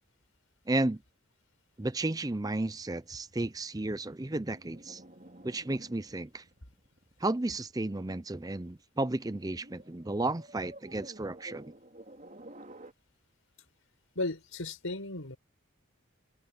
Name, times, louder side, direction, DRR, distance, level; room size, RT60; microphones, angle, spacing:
voice 1, 0.7-1.0 1.8-5.0 5.4-6.4 7.2-11.7, right 2 dB, 15° right, 0.6 m, -33 dB
sound 1, 2.8-8.2 9.2-12.9, right 1 dB, 35° right, 4.2 m, -53 dB
voice 2, 14.1-15.4, left 2 dB, 85° left, 4.8 m, -35 dB
open air
head